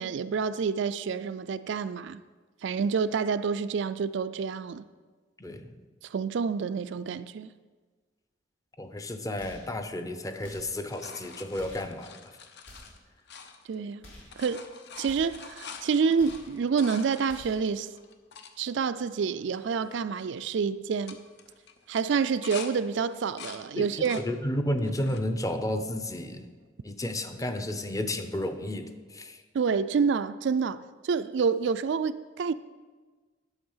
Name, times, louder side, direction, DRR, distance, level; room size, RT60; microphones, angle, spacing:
voice 1, 0.0-2.2 2.6-4.8 6.0-7.5 13.7-14.0 14.4-14.7 15.0-17.9 18.6-21.2 21.9-24.2 29.5-32.5, right 5 dB, 65° right, 0.4 m, -28 dB
voice 2, 5.4-5.7 8.8-12.2 23.8-26.5 26.8-29.4, left 1 dB, 20° left, 0.6 m, -32 dB
sound 1, 9.4-9.7 10.4-10.8 11.5-11.9 12.6-13.0 14.0-14.4 15.0-15.4 16.1-16.5 17.2-17.7, left 1 dB, 75° left, 3.6 m, -50 dB
sound 2, 10.3-13.9 14.2-18.5 19.1-19.2 19.4-19.9 20.2-20.5 20.9-22.7 23.1-24.3 24.8-25.3 25.9-26.6 28.3-28.4, left 6 dB, 60° left, 0.8 m, -46 dB
10.5 x 7.0 x 5.5 m
head